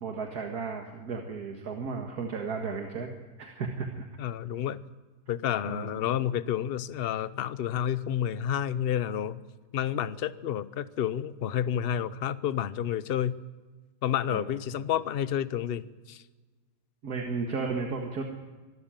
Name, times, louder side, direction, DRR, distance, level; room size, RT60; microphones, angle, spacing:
voice 1, 0.0-3.1 3.4-4.0 5.7-6.1 14.3-14.5 17.0-18.2, right 4 dB, 70° right, 2 dB, 2.1 m, -34 dB
voice 2, 4.2-4.8 5.3-9.4 9.7-13.4 14.0-16.2, left 10 dB, 50° left, 15 dB, 0.7 m, -30 dB
24.5 x 13.0 x 8.9 m, 1.3 s
omnidirectional pair, 1.7 m